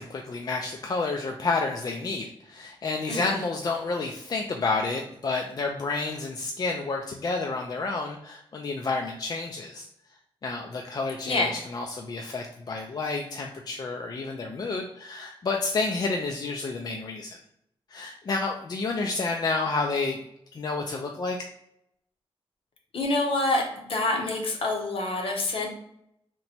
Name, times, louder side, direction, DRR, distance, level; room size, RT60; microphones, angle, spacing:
voice 1, 0.0-9.9 10.4-11.5 11.7-17.4 17.9-20.2 20.5-21.4, left 3 dB, 40° left, 1 dB, 0.3 m, -30 dB
voice 2, 22.9-25.7, left 2 dB, 65° left, 1 dB, 0.8 m, -26 dB
2.9 x 2.2 x 4.0 m, 0.77 s
wide cardioid pair, 115°, 10 cm